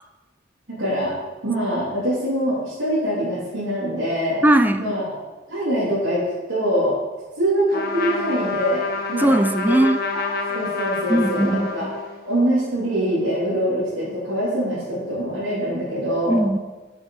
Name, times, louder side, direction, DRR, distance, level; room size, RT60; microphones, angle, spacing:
voice 1, 0.8-1.1 1.4-4.4 4.8-5.2 5.5-7.0 7.4-8.8 9.1-9.4 9.7-9.8 10.1-11.9 12.2-16.4, equal, 85° right, -11 dB, 3.6 m, -24 dB
voice 2, 4.4-4.9 9.2-10.0 11.1-11.9 16.3-16.6, right 1 dB, 10° right, 8 dB, 0.4 m, -19 dB
Trumpet, 7.7-12.3, left 4 dB, 50° left, 1.4 m, -28 dB
8.2 x 7.4 x 5.9 m, 1.2 s
head